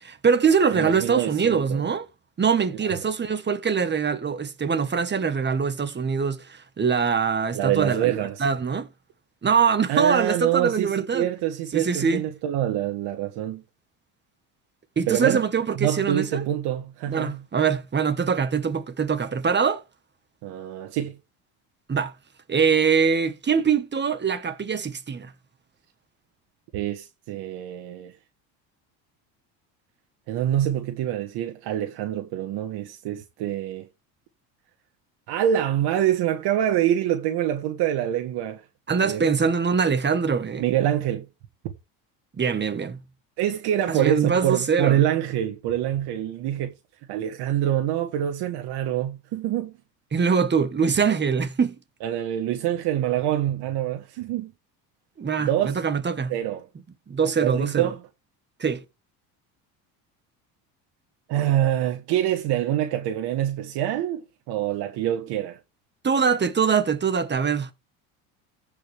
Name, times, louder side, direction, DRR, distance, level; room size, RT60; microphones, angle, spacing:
voice 1, 0.0-2.1 2.4-8.9 9.4-11.3 11.7-12.2 14.9-16.4 17.1-19.8 21.9-22.1 22.5-25.3 38.9-40.6 42.4-43.0 43.9-45.0 50.1-51.7 55.2-56.3 57.1-57.9 58.6-58.8 66.0-67.7, right 6 dB, 25° right, 1.7 m, -23 dB
voice 2, 0.7-1.8 2.8-3.1 7.5-8.4 9.9-13.6 15.1-15.4 15.8-17.4 20.4-21.2 26.7-28.1 30.3-33.9 35.3-38.6 39.0-39.3 40.6-41.3 43.4-46.7 47.1-49.7 52.0-54.5 55.4-55.7 56.3-56.7 57.4-58.0 61.3-65.6, right 11 dB, 65° right, 1.8 m, -25 dB
15.0 x 5.4 x 3.6 m
supercardioid pair, 100°, 42 cm